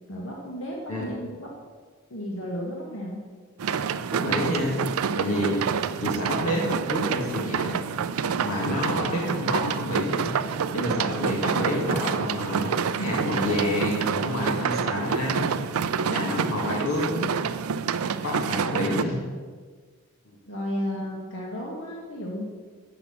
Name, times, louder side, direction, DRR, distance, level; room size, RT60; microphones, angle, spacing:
voice 1, 0.1-1.5 2.1-3.2 19.0-19.2 20.4-22.4, equal, 65° left, -2 dB, 1.4 m, -33 dB
sound 1, 3.6-19.0, right 6 dB, 80° right, 0.4 m, -28 dB
voice 2, 4.1-4.7 5.1-5.6 6.0-7.8 8.4-10.3 10.7-15.5 16.1-17.3 18.2-19.2, left 1 dB, 90° left, -3 dB, 2.0 m, -28 dB
8.1 x 6.0 x 7.0 m, 1.5 s
head